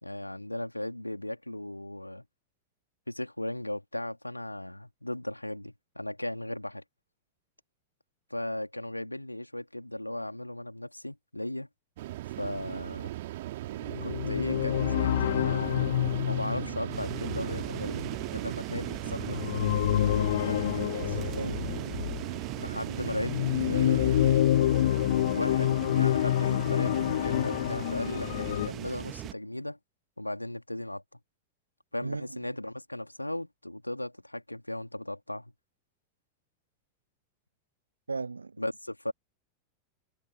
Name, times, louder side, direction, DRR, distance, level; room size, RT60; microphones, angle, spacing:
voice 1, 0.0-2.2 3.1-6.8 8.3-11.7 12.4-13.1 14.0-18.0 18.3-20.6 22.6-23.3 23.7-24.2 25.3-29.8 30.2-31.0 31.9-35.5 38.6-39.1, left 1 dB, 85° left, 3.1 m, -37 dB
sound 1, 12.0-24.4, right 16 dB, 55° right, 2.4 m, -38 dB
sound 2, 13.9-22.4 23.0-28.7, left 12 dB, 60° left, 0.8 m, -28 dB
sound 3, 16.9-29.3, right 13 dB, 35° right, 1.1 m, -40 dB
voice 2, 20.7-21.6 32.0-32.4 38.1-38.6, right 4 dB, 80° right, 0.6 m, -37 dB
figure-of-eight pair, 90°, 0 cm